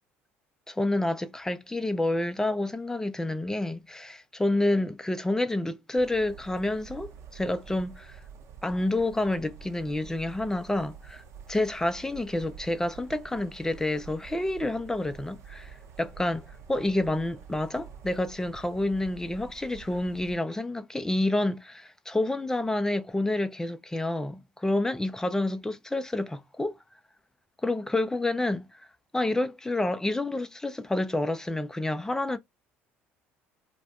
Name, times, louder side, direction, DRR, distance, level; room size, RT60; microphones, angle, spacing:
voice 1, 0.7-8.2 8.6-11.2 11.5-26.8 27.6-28.8 29.1-32.4, left 2 dB, 10° left, 0.6 m, -29 dB
sound 1, 6.0-20.4, right 7 dB, 55° right, 0.8 m, -48 dB
2.5 x 2.2 x 3.4 m
hypercardioid pair, 65°, 6 cm